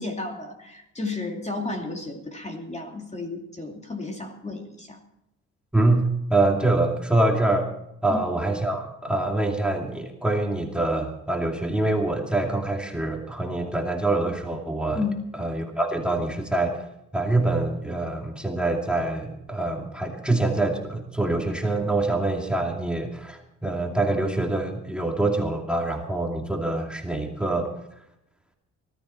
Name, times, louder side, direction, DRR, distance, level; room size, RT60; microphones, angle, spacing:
voice 1, 0.0-5.0 8.1-8.2 14.9-15.2, left 3 dB, 20° left, 2 dB, 2.7 m, -32 dB
voice 2, 5.7-7.7 8.0-15.0 15.4-16.8 17.1-27.7, right 2 dB, 5° right, 2 dB, 2.5 m, -25 dB
19.5 x 13.5 x 4.4 m, 0.82 s
cardioid pair, 90°, 30 cm